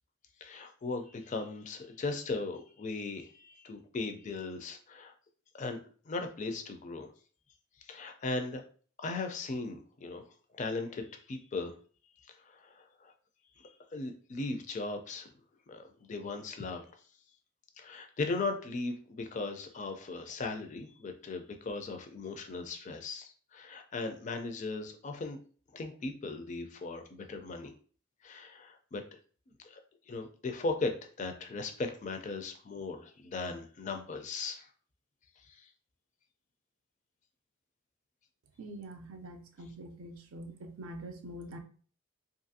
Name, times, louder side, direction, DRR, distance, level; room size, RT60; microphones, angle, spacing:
voice 1, 0.4-5.1 5.6-5.8 6.1-7.1 7.9-8.6 9.0-10.2 10.5-11.7 12.4-13.1 13.9-15.3 15.7-16.8 17.8-25.4 25.7-27.7 28.2-29.0 29.6-29.8 30.1-34.7 35.5-35.7, left 3 dB, 35° left, 6 dB, 0.4 m, -38 dB
voice 2, 38.6-41.6, right 1 dB, 85° right, 6 dB, 0.5 m, -45 dB
2.7 x 2.4 x 2.6 m, 0.42 s
head